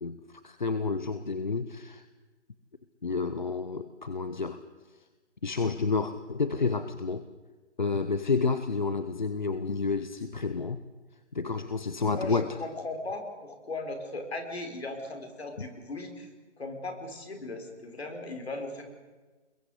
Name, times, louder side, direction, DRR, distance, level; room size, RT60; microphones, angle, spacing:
voice 1, 0.0-2.0 3.0-4.6 5.4-7.3 7.8-10.8 11.3-12.6, left 4 dB, 40° left, 11 dB, 0.9 m, -30 dB
voice 2, 12.1-16.3 16.6-18.8, left 2 dB, 60° left, 4 dB, 5.5 m, -38 dB
24.5 x 22.0 x 8.2 m, 1.3 s
hypercardioid pair, 175°, 35 cm